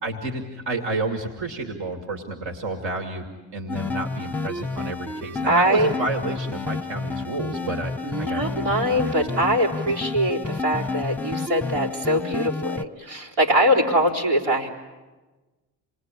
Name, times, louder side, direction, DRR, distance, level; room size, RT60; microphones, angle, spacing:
voice 1, 0.0-3.2 3.5-9.1 9.4-9.5, right 2 dB, 65° right, 4 dB, 2.7 m, -31 dB
sound 1, 3.7-12.8, left 3 dB, 5° left, 0.9 m, -30 dB
voice 2, 5.4-5.9 8.0-14.7, equal, 90° right, -5 dB, 4.0 m, -22 dB
27.5 x 20.5 x 9.9 m, 1.2 s
hypercardioid pair, 40°, 47 cm